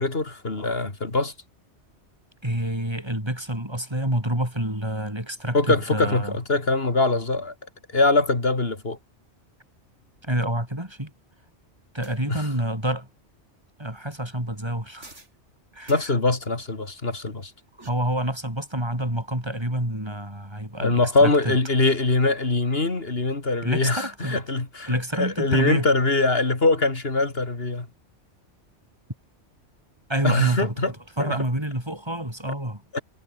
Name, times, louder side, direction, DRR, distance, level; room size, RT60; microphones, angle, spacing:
voice 1, 0.0-1.3 5.5-7.5 7.9-9.0 12.3-12.5 15.9-17.5 20.8-27.9 30.2-30.9 31.2-31.4 32.9-33.0, left 3 dB, 55° left, 3.3 m, -23 dB
voice 2, 2.4-6.4 10.2-11.1 11.9-13.1 13.8-15.1 15.7-15.9 17.8-21.6 23.6-24.4 24.9-25.9 30.1-30.7 31.2-32.8, right 1 dB, 20° right, 5.7 m, -28 dB
sound 1, 12.0-12.2 15.0-15.4 15.8-16.0 17.5-17.9, right 2 dB, 90° right, 4.6 m, -47 dB
omnidirectional pair, 1.2 m